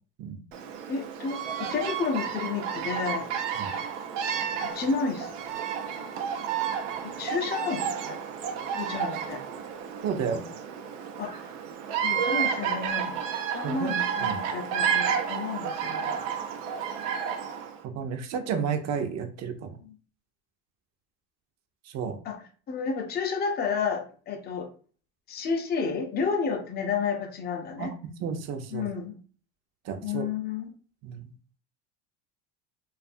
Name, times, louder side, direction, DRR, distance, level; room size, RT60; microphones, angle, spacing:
Bird vocalization bird call bird song, 0.5-17.8, right 7 dB, 85° right, 0.6 m, -31 dB
voice 1, 0.9-3.3 4.6-5.3 7.0-8.2 8.8-9.4 11.2-11.5 12.0-13.2 13.5-16.2 19.8-19.9 22.2-22.4 22.7-24.7 25.3-27.9 28.7-29.2 30.0-30.7, left 5 dB, 25° left, 0.6 m, -31 dB
voice 2, 10.0-10.5 13.6-14.4 17.8-19.7 21.9-22.2 27.8-27.9 28.2-28.9 29.8-30.3 31.0-31.3, right 6 dB, 45° right, 0.7 m, -32 dB
2.6 x 2.4 x 2.5 m
supercardioid pair, 100°, 36 cm